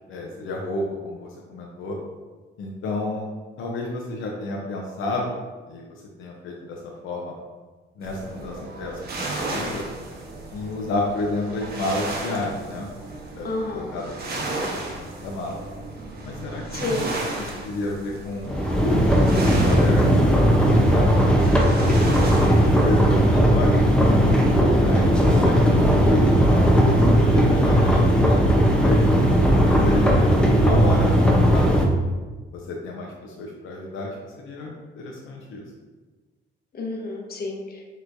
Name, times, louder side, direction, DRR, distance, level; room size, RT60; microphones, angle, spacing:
voice 1, 0.1-2.0 2.6-3.3 3.6-5.3 5.7-5.8 6.2-7.3 8.0-9.8 10.5-12.9 13.4-13.5 13.7-15.6 16.2-17.1 17.4-18.6 18.9-21.7 22.3-23.8 24.6-29.0 29.6-31.1 31.5-31.9 32.5-35.6, left 2 dB, 85° left, -1 dB, 0.7 m, -31 dB
sound 1, 8.0-23.0, right 2 dB, 50° right, 1.0 m, -34 dB
voice 2, 13.4-14.0 16.7-17.1 36.7-37.8, left 2 dB, 50° left, 0 dB, 1.0 m, -30 dB
sound 2, 18.4-31.9, equal, 5° left, 0.7 m, -17 dB
6.3 x 3.1 x 2.6 m, 1.3 s
cardioid pair, 90°, 20 cm